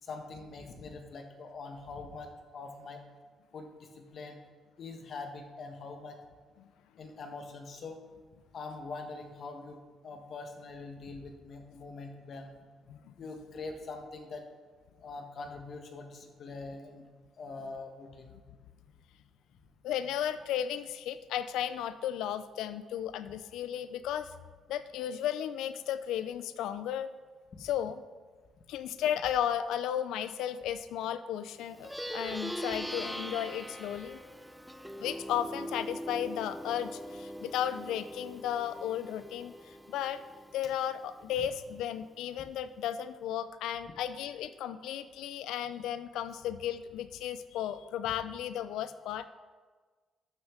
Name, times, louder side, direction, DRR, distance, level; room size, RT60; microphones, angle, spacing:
voice 1, 0.0-3.0 3.5-4.4 4.8-6.2 7.0-8.0 8.5-12.5 13.2-14.4 15.0-17.1 17.4-18.3 27.6-27.7, left 3 dB, 55° left, 5 dB, 1.3 m, -43 dB
voice 2, 19.8-24.3 24.7-27.1 27.6-28.0 28.7-34.2 35.0-40.2 40.5-49.2, left 10 dB, 90° left, 13 dB, 0.4 m, -34 dB
Plucked string instrument, 31.7-41.4, equal, ahead, 0.6 m, -41 dB
11.5 x 7.0 x 3.7 m, 1.4 s
cardioid pair, 90°, 0 cm